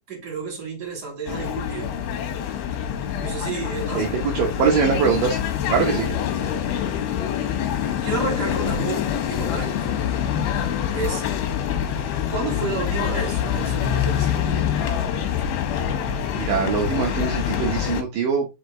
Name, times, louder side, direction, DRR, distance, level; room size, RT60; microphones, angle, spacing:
voice 1, 0.1-1.9 3.2-4.1 6.1-6.2 8.0-9.9 10.9-11.2 12.3-14.7, right 4 dB, 25° right, 3.3 m, -31 dB
sound 1, 1.3-18.0, left 9 dB, 80° left, 3.0 m, -25 dB
voice 2, 3.9-5.4 5.7-6.1 16.4-18.5, right 6 dB, 70° right, 2.5 m, -22 dB
5.8 x 5.1 x 3.8 m
omnidirectional pair, 4.3 m